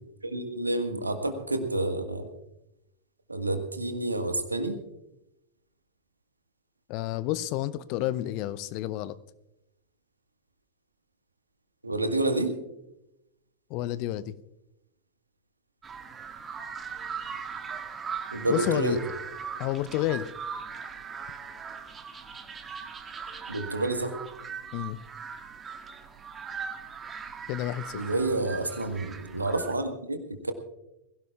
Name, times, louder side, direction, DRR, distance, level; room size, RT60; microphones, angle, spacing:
voice 1, 0.2-2.3 3.3-4.8 11.8-12.6 18.3-19.0 23.5-24.1 27.9-30.2 30.4-30.5, right 2 dB, 80° right, 1.6 m, -29 dB
voice 2, 6.9-9.2 13.7-14.3 18.5-19.0 19.6-20.3 24.7-25.0 27.5-28.0, left 14 dB, 45° left, 0.6 m, -30 dB
sound 1, 15.8-29.7, right 6 dB, 20° right, 1.7 m, -39 dB
21.5 x 16.5 x 2.4 m
figure-of-eight pair, 90°, 0 cm